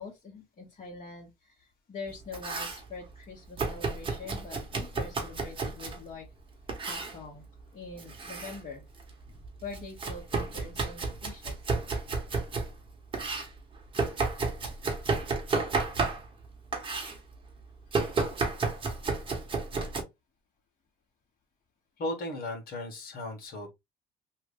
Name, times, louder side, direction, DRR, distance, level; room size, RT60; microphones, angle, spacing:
voice 1, 0.0-6.3 6.8-7.5 7.7-8.8 9.6-11.6, left 4 dB, 40° left, 1.7 m, -44 dB
Domestic sounds home sounds, 2.1-2.8 3.6-6.0 6.7-7.2 8.0-8.6 9.0-12.7 13.1-16.4 16.7-17.2 17.9-20.0, right 4 dB, 30° right, 1.3 m, -32 dB
voice 2, 22.0-23.7, left 1 dB, 60° left, 1.5 m, -36 dB
3.3 x 2.5 x 3.3 m
cardioid pair, 110°, 17 cm